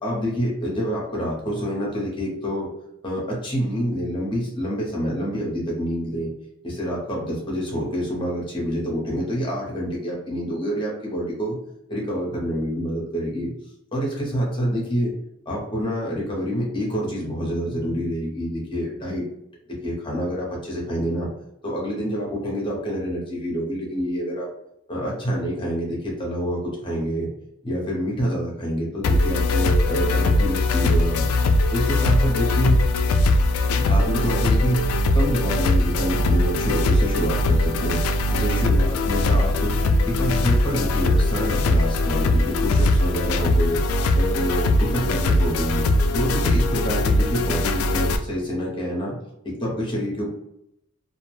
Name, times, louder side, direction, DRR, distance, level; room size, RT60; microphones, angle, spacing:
voice 1, 0.0-2.7 3.0-6.3 6.6-11.6 11.9-13.5 13.9-15.1 15.5-19.2 19.8-21.3 21.6-24.5 24.9-27.3 27.6-31.2 31.7-32.8 33.9-34.8 35.1-38.0 38.3-39.7 40.0-43.8 44.1-45.8 46.1-49.2 49.4-50.3, equal, 25° left, -2 dB, 0.8 m, -27 dB
sound 1, 29.0-48.2, left 2 dB, 80° left, 0.3 m, -20 dB
2.4 x 2.1 x 3.2 m, 0.80 s
head